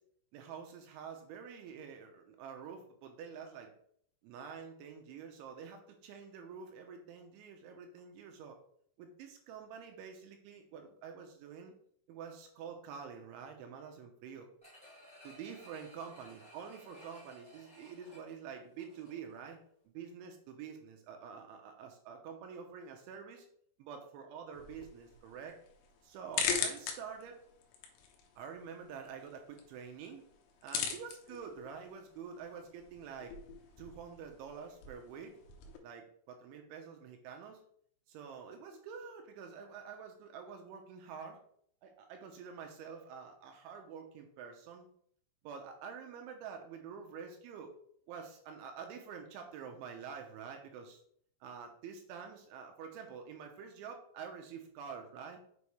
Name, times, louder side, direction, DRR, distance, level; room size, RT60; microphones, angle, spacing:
voice 1, 0.3-3.7 4.2-8.6 9.0-11.7 12.1-14.5 15.2-19.6 19.9-23.5 23.8-25.6 26.0-27.4 28.4-30.2 30.6-33.3 33.8-35.4 35.8-37.6 38.1-41.4 41.8-44.9 45.4-47.8 48.1-51.0 51.4-55.4, right 6 dB, 80° right, 4 dB, 3.0 m, -47 dB
sound 1, 14.6-19.4 19.8-19.9, equal, 10° left, 0.4 m, -57 dB
sound 2, 24.5-35.8, left 7 dB, 80° left, 3.2 m, -42 dB
7.0 x 6.2 x 3.2 m, 0.64 s
omnidirectional pair, 5.8 m